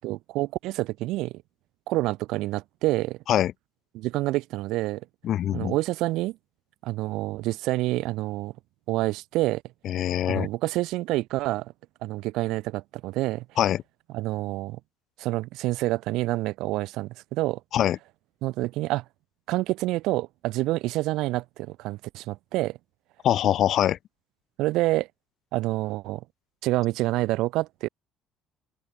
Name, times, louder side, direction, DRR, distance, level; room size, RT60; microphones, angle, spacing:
voice 1, 0.0-1.3 1.9-3.2 3.9-5.0 5.5-6.4 6.8-8.5 8.9-9.6 10.3-11.7 12.0-13.4 14.1-14.8 15.2-17.6 18.4-19.0 19.5-22.8 24.6-25.1 25.5-26.2 26.6-27.9, right 18 dB, 70° right, 2.4 m, -27 dB
voice 2, 5.2-5.8 9.8-10.5 13.6-13.8 17.7-18.0 23.2-24.0, left 11 dB, 45° left, 1.7 m, -23 dB
open air
cardioid pair, 175°, 0 cm